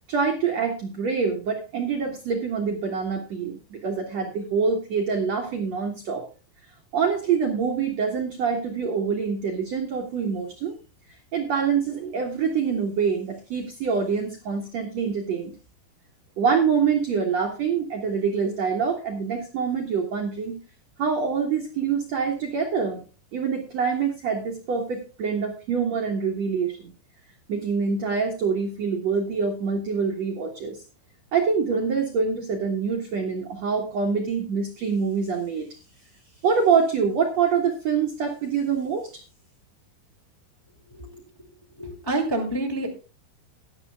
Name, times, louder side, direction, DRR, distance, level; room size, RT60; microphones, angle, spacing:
voice 1, 0.1-6.3 6.9-10.7 11.3-15.5 16.4-20.6 21.0-23.0 23.3-26.8 27.5-30.8 31.3-35.7 36.4-39.1, right 6 dB, 55° right, 1 dB, 2.0 m, -25 dB
voice 2, 41.8-42.9, right 2 dB, 10° left, 0 dB, 1.5 m, -27 dB
17.0 x 11.5 x 2.3 m, 0.33 s
omnidirectional pair, 4.9 m